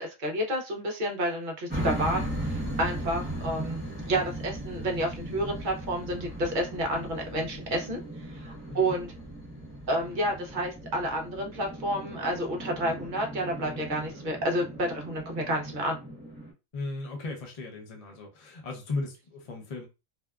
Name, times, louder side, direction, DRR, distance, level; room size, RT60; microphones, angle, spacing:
voice 1, 0.0-9.1 9.9-16.0, right 1 dB, 50° right, 0.6 m, -30 dB
sound 1, 1.7-16.5, right 1 dB, 10° right, 0.7 m, -37 dB
voice 2, 16.7-19.9, left 3 dB, 55° left, 0.4 m, -36 dB
2.7 x 2.2 x 2.2 m
omnidirectional pair, 1.4 m